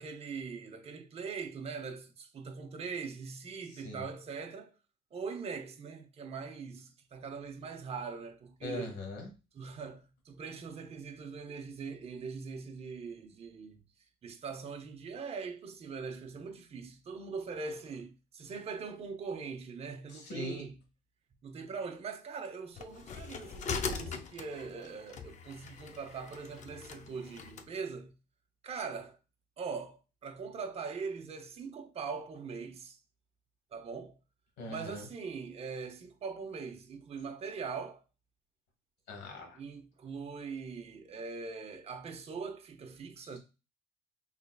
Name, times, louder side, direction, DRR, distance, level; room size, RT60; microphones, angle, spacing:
voice 1, 0.0-4.7 5.1-9.0 9.5-13.8 14.2-20.8 21.4-28.1 28.6-29.2 29.6-33.0 33.7-34.1 34.7-38.0 39.5-43.4, right 5 dB, 35° right, 0.7 m, -41 dB
voice 2, 8.6-9.3 20.1-20.7 34.6-35.1 39.1-39.6, left 1 dB, 85° left, 1.4 m, -41 dB
sound 1, 22.8-27.7, left 6 dB, 45° left, 0.5 m, -41 dB
3.9 x 3.1 x 2.3 m
cardioid pair, 110°, 17 cm